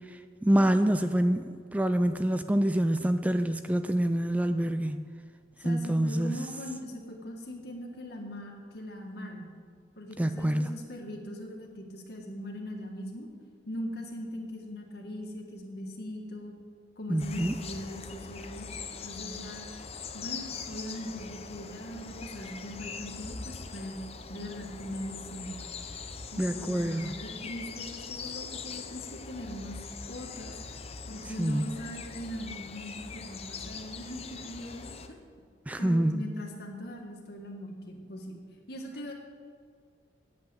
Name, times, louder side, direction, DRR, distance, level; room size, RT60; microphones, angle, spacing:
voice 1, 0.1-5.1 5.6-6.3 10.2-10.7 17.1-17.5 26.4-27.1 31.4-31.7 35.7-36.2, right 1 dB, 10° right, 9 dB, 0.3 m, -26 dB
voice 2, 5.6-9.5 10.0-13.3 13.7-16.5 17.0-18.7 19.0-19.7 20.1-24.0 24.3-25.6 26.3-29.8 30.1-30.5 31.1-35.2 35.8-39.1, equal, 60° left, 1 dB, 1.9 m, -40 dB
sound 1, 17.2-35.1, left 5 dB, 35° left, 0.7 m, -42 dB
9.8 x 8.6 x 7.9 m, 2.1 s
head